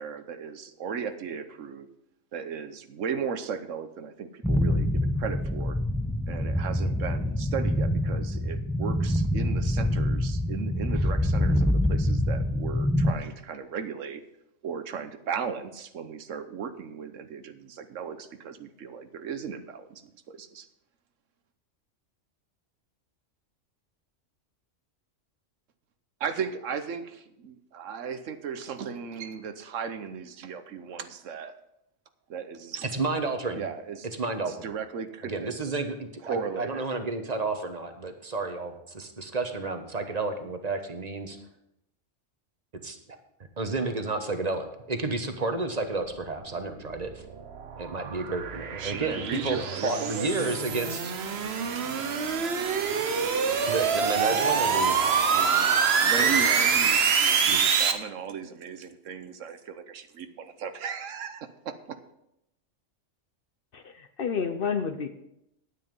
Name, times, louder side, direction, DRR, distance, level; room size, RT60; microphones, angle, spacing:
voice 1, 0.0-1.9 2.3-5.8 6.3-14.2 14.6-20.7 26.2-31.6 32.3-32.9 33.5-34.1 34.6-35.5 36.2-36.8 48.8-50.5 55.3-55.7 56.0-62.0, right 7 dB, 75° right, 10 dB, 1.2 m, -36 dB
sound 1, 4.4-13.1, left 1 dB, 5° left, 0.3 m, -26 dB
voice 2, 32.9-33.6 34.2-34.7 35.2-41.4 42.8-43.0 43.6-47.1 47.8-51.1 53.7-55.0 56.1-56.8 57.5-57.6, right 3 dB, 35° right, 6 dB, 1.2 m, -31 dB
sound 2, 46.6-57.9, right 6 dB, 55° right, 1.1 m, -25 dB
voice 3, 63.7-65.1, left 6 dB, 55° left, 9 dB, 0.8 m, -30 dB
9.8 x 9.3 x 5.3 m, 0.82 s
omnidirectional pair, 1.3 m